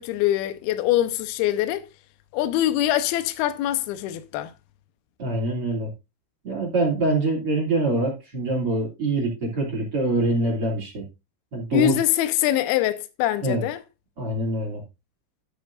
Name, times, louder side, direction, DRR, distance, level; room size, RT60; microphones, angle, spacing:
voice 1, 0.0-1.8 2.3-4.5 11.7-13.8, left 13 dB, 85° left, 2.3 m, -23 dB
voice 2, 5.2-5.9 6.4-11.1 11.5-11.9 13.4-13.6 14.2-14.8, right 2 dB, 35° right, 2.9 m, -24 dB
12.5 x 8.5 x 2.5 m
omnidirectional pair, 5.5 m